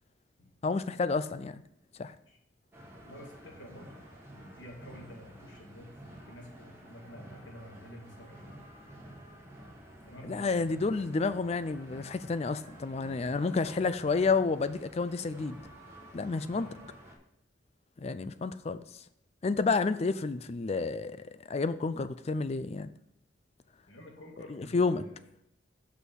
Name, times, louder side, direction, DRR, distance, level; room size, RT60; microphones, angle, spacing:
voice 1, 0.6-1.6 2.0-2.1 10.3-15.6 16.1-16.7 18.0-18.8 19.4-22.9 24.5-25.0, left 4 dB, 35° left, 0.4 m, -30 dB
sound 1, 2.7-17.1, equal, 15° right, 1.6 m, -51 dB
voice 2, 3.0-3.9 4.3-5.9 6.3-8.6 10.0-10.5 16.6-16.7 23.9-25.3, equal, 85° left, 1.9 m, -50 dB
6.3 x 5.6 x 6.3 m
head